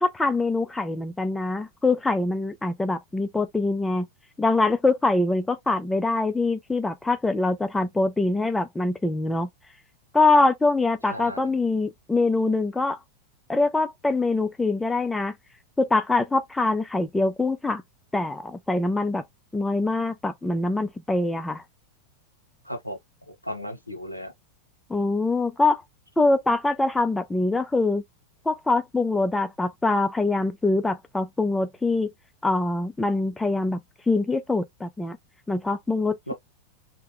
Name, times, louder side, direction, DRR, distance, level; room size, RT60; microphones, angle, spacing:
voice 1, 0.0-4.1 4.4-9.5 10.1-13.0 13.5-15.3 15.8-17.8 18.1-19.2 19.5-21.6 24.9-25.8 26.2-28.0 28.5-32.1 32.4-33.8 34.1-35.2 35.5-36.3, left 2 dB, 10° left, 0.5 m, -24 dB
voice 2, 11.1-11.4 22.6-23.0 23.3-24.3 36.3-36.4, equal, 85° left, 0.9 m, -35 dB
2.9 x 2.1 x 3.0 m
figure-of-eight pair, 90°, 0 cm